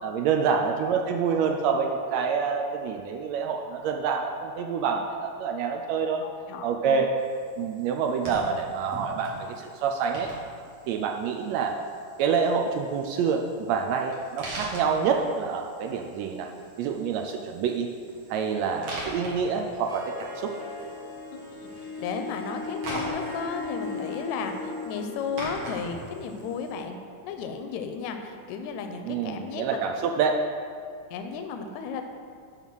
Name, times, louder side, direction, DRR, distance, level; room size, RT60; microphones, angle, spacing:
voice 1, 0.0-6.2 6.6-7.1 7.6-10.3 10.9-11.8 12.2-16.5 16.8-17.9 18.3-20.5 29.0-30.4, right 6 dB, 80° right, 3 dB, 1.7 m, -27 dB
voice 2, 6.2-7.0 21.3-29.8 31.1-32.0, left 5 dB, 85° left, 6 dB, 1.9 m, -34 dB
sound 1, 7.2-26.8, right 1 dB, 60° right, 2.9 m, -43 dB
Harp, 19.7-28.3, left 3 dB, 10° right, 1.9 m, -38 dB
10.5 x 4.1 x 6.2 m, 2.2 s
omnidirectional pair, 3.4 m